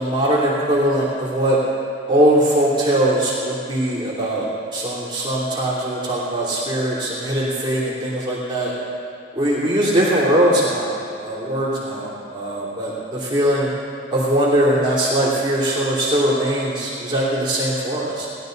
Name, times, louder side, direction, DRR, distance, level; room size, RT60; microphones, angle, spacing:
voice 1, 0.0-1.6 2.1-8.7 9.3-13.7 14.1-18.3, right 1 dB, 25° right, -8 dB, 3.1 m, -20 dB
19.5 x 12.5 x 4.0 m, 2.5 s
head